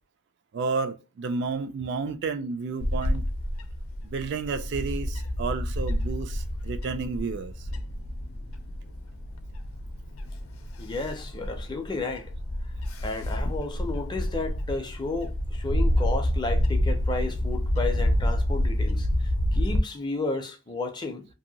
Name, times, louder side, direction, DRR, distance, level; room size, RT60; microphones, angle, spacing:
voice 1, 0.5-3.2 4.0-7.7, right 4 dB, 50° right, 0.3 m, -31 dB
Bird / Wind, 2.8-19.8, left 1 dB, 80° left, 0.5 m, -28 dB
voice 2, 10.8-12.3 13.0-21.3, left 3 dB, 20° left, 0.4 m, -32 dB
2.7 x 2.5 x 2.7 m
head